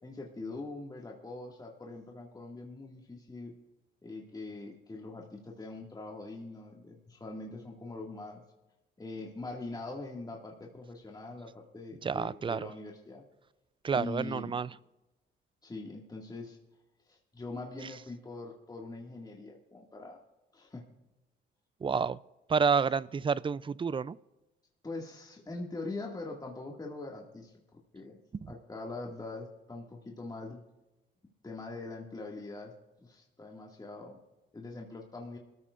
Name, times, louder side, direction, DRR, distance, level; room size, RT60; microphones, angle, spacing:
voice 1, 0.0-3.5 4.0-8.4 9.0-13.2 13.9-14.6 15.6-16.6 17.1-20.2 20.5-20.8 24.8-28.2 28.5-30.6 31.4-32.7 33.0-34.2 34.5-35.4, left 2 dB, 20° left, -1 dB, 2.1 m, -43 dB
voice 2, 12.0-12.7 13.8-14.7 21.8-22.2 22.5-24.2, right 5 dB, 25° right, 19 dB, 0.4 m, -29 dB
22.5 x 13.5 x 2.5 m, 1.0 s
cardioid pair, 90°, 20 cm